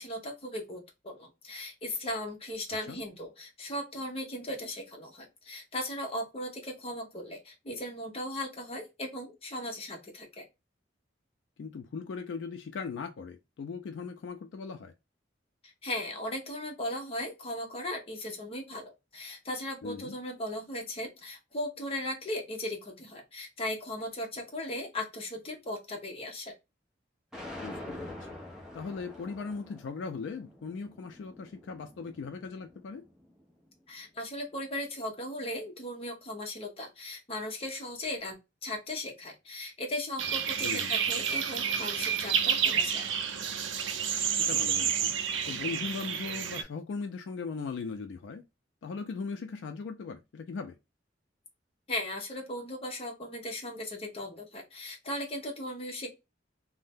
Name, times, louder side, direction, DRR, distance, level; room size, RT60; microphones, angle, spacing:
voice 1, 0.0-10.5 15.6-26.5 33.9-38.4 38.6-43.1 51.9-56.1, left 1 dB, 30° left, 0.7 m, -37 dB
voice 2, 11.6-14.9 19.8-20.2 27.6-28.3 28.7-33.0 40.6-40.9 44.4-45.2 45.5-48.4 48.8-50.7, left 5 dB, 70° left, 0.3 m, -39 dB
sound 1, 27.3-33.5, left 1 dB, 5° right, 0.7 m, -46 dB
sound 2, 40.2-46.6, right 7 dB, 85° right, 0.5 m, -30 dB
2.6 x 2.0 x 3.4 m
head